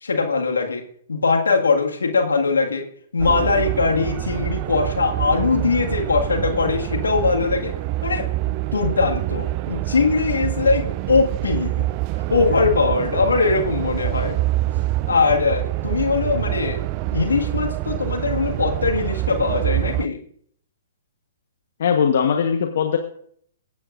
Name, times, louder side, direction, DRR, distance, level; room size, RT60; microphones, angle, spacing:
voice 1, 0.0-0.8 1.1-2.9 3.1-7.8 8.0-8.3 8.7-11.8 12.3-14.4 15.1-16.8 17.1-20.2, left 4 dB, 80° left, 2 dB, 1.9 m, -21 dB
sound 1, 3.2-20.1, right 16 dB, 35° right, 0.4 m, -26 dB
voice 2, 21.8-23.0, left 7 dB, 60° left, 4 dB, 1.2 m, -19 dB
23.0 x 8.4 x 2.6 m, 0.63 s
figure-of-eight pair, 120°, 0 cm